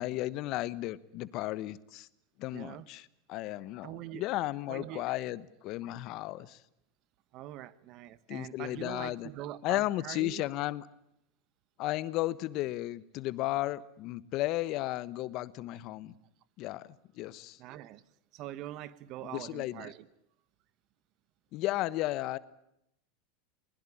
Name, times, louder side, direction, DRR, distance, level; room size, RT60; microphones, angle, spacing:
voice 1, 0.0-2.1 2.4-6.6 8.3-9.3 9.6-10.9 11.8-16.1 16.6-16.9 17.2-17.6 19.3-19.9 21.5-22.4, left 16 dB, 50° left, 1.2 m, -34 dB
voice 2, 2.5-2.9 3.8-4.3 4.7-5.0 7.3-10.4 17.6-18.0 18.3-20.1, right 14 dB, 50° right, 1.3 m, -43 dB
22.5 x 21.0 x 9.9 m
supercardioid pair, 115°, 0 cm